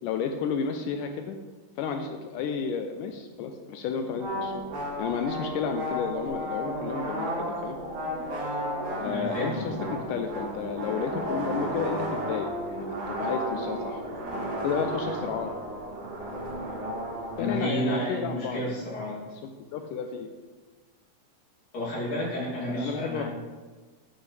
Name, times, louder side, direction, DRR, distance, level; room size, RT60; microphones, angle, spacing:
voice 1, 0.0-1.4 1.8-4.6 5.0-7.3 7.6-7.8 9.0-14.0 14.6-15.5 17.4-18.8 19.7-20.3 22.7-23.2, left 6 dB, 80° left, 6 dB, 2.0 m, -32 dB
sound 1, 4.2-17.5, right 1 dB, 70° right, 3.2 m, -33 dB
voice 2, 9.0-9.8 17.4-19.2 21.7-23.2, equal, 50° left, -7 dB, 3.6 m, -31 dB
9.7 x 8.2 x 3.2 m, 1.4 s
omnidirectional pair, 4.1 m